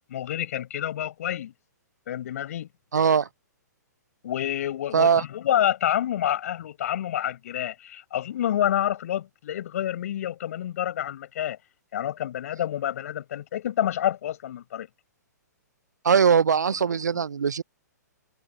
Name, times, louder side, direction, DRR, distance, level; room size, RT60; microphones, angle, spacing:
voice 1, 0.1-1.5 2.1-2.7 4.2-11.6 11.9-14.9 16.7-16.9 17.1-17.2, left 11 dB, 55° left, 6.5 m, -28 dB
voice 2, 2.9-3.3 4.9-5.2 16.0-17.6, right 6 dB, 75° right, 0.5 m, -20 dB
figure-of-eight pair, 115°, 10 cm